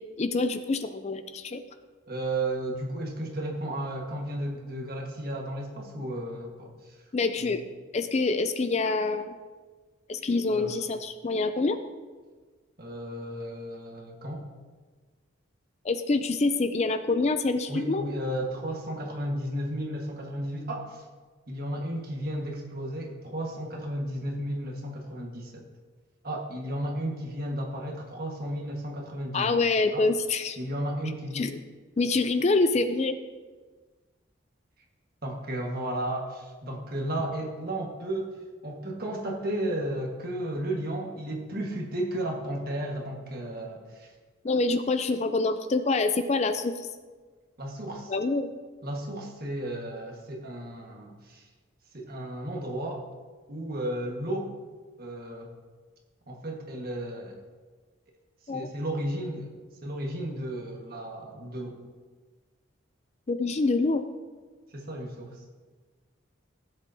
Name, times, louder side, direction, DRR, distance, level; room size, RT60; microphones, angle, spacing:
voice 1, 0.2-1.6 7.1-7.6 7.9-9.3 10.1-11.8 15.8-18.0 29.3-30.6 31.3-31.6 32.0-33.2 44.4-46.9 48.1-48.5 58.5-58.6 63.3-64.0, left 3 dB, 30° left, 9 dB, 0.4 m, -26 dB
voice 2, 2.1-7.0 7.4-7.5 10.5-10.7 12.8-14.5 17.7-21.0 21.5-25.7 26.2-29.6 29.9-30.1 30.6-31.5 35.2-38.3 38.6-44.1 47.6-48.1 48.8-51.5 51.9-53.0 53.5-54.5 55.0-55.5 56.3-57.4 58.5-59.5 59.8-61.8 64.7-65.4, right 1 dB, 45° right, 0 dB, 1.6 m, -33 dB
16.0 x 7.8 x 2.8 m, 1.4 s
head